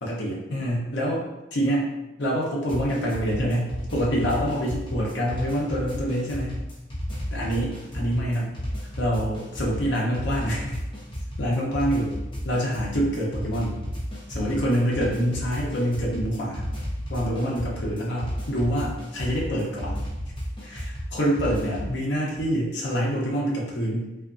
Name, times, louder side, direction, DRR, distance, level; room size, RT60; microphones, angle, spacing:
voice 1, 0.0-1.2 1.5-1.9 2.2-6.6 7.3-8.6 9.0-10.8 11.4-12.2 12.4-13.8 14.3-16.7 17.1-20.0 20.6-24.1, equal, 70° left, -3 dB, 0.8 m, -26 dB
sound 1, 2.7-21.9, equal, 30° left, 0.8 m, -33 dB
3.4 x 2.5 x 2.5 m, 0.99 s
head